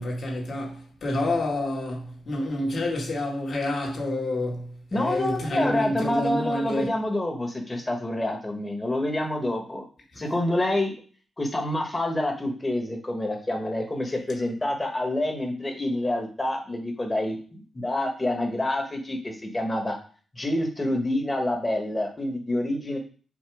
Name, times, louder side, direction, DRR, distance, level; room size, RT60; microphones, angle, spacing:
voice 1, 0.0-6.9 10.1-10.2, left 1 dB, 50° left, 2.0 m, -28 dB
voice 2, 4.9-9.8 10.2-10.9 11.4-20.0 20.3-23.0, left 1 dB, 20° left, 1.5 m, -27 dB
7.3 x 3.0 x 4.9 m
wide cardioid pair, 125°, 0 cm